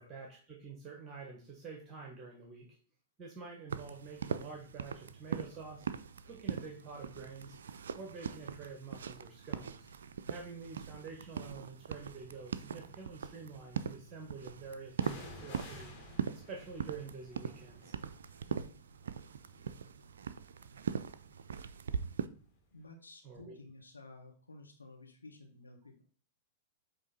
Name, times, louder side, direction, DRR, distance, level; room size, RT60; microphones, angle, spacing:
voice 1, 0.0-2.8 3.2-5.9 6.2-7.6 7.9-9.9 10.3-15.9 16.3-17.9 18.4-18.6 23.2-23.6, right 4 dB, 30° right, 2 dB, 1.3 m, -48 dB
sound 1, 3.7-22.3, right 7 dB, 70° right, 0.4 m, -41 dB
sound 2, 10.1-10.4 11.1-12.1 15.0-22.6 22.9-23.0, left 2 dB, 40° left, 2.0 m, -55 dB
voice 2, 22.7-26.0, left 2 dB, 85° left, 2 dB, 1.1 m, -53 dB
8.0 x 3.1 x 4.1 m, 0.43 s
figure-of-eight pair, 100°, 0 cm